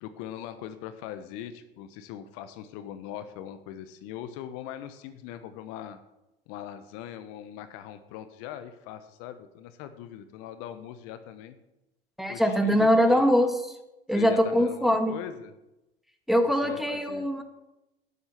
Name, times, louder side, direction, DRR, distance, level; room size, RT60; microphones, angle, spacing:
voice 1, 0.0-6.0 6.5-11.6 12.3-13.3 14.1-15.5 16.6-17.3, left 10 dB, 50° left, 10 dB, 1.2 m, -41 dB
voice 2, 12.2-13.8 14.1-15.1 16.3-17.4, equal, ahead, 5 dB, 1.8 m, -23 dB
13.0 x 10.0 x 6.0 m, 0.94 s
figure-of-eight pair, 80°, 29 cm